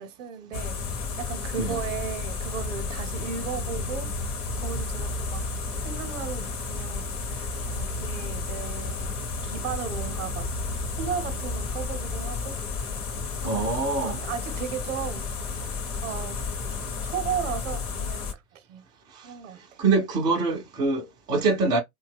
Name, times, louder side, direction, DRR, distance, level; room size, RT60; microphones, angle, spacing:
voice 1, 0.0-4.1 4.6-5.5 5.8-9.2 9.4-12.6 13.3-13.7 13.9-15.3 15.6-16.5 17.0-18.8 19.2-19.6, right 8 dB, 55° right, 0.8 m, -36 dB
sound 1, 0.5-18.3, left 3 dB, 30° left, 0.7 m, -32 dB
voice 2, 13.4-14.2 19.1-19.3 19.8-21.8, right 3 dB, 10° right, 0.4 m, -25 dB
2.7 x 2.2 x 3.3 m
figure-of-eight pair, 100°, 45 cm